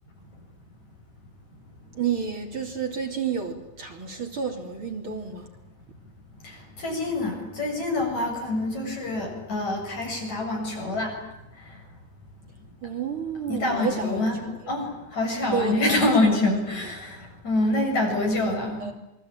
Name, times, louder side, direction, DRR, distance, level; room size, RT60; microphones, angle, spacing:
voice 1, 2.0-5.5 12.8-14.6 15.5-16.6 16.8-16.9 17.9-18.1 18.8-18.9, right 6 dB, 40° right, 3 dB, 3.7 m, -31 dB
voice 2, 6.4-11.2 13.5-14.3 14.7-18.8, left 2 dB, 65° left, 1 dB, 9.0 m, -26 dB
27.0 x 23.5 x 9.0 m, 0.94 s
omnidirectional pair, 3.5 m